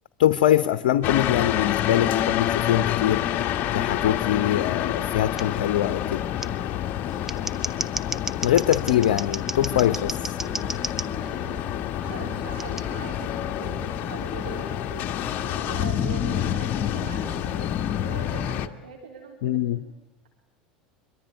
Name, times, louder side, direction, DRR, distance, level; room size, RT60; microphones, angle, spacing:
voice 1, 0.2-3.2 3.7-6.2 8.4-10.4 19.4-19.8, left 11 dB, 75° left, 11 dB, 1.0 m, -23 dB
sound 1, 1.0-18.7, left 11 dB, 50° left, 1.7 m, -28 dB
Scissors, 5.4-5.5 6.4-6.5 7.1-11.1 12.6-12.8, right 2 dB, 10° right, 1.1 m, -32 dB
sound 2, 10.4-13.2 13.6-16.4 17.0-17.6, right 4 dB, 25° right, 5.5 m, -44 dB
voice 2, 12.0-15.1 15.7-19.8, right 6 dB, 90° right, 2 dB, 4.0 m, -41 dB
25.5 x 23.5 x 9.6 m, 0.90 s
hypercardioid pair, 85°, 5 cm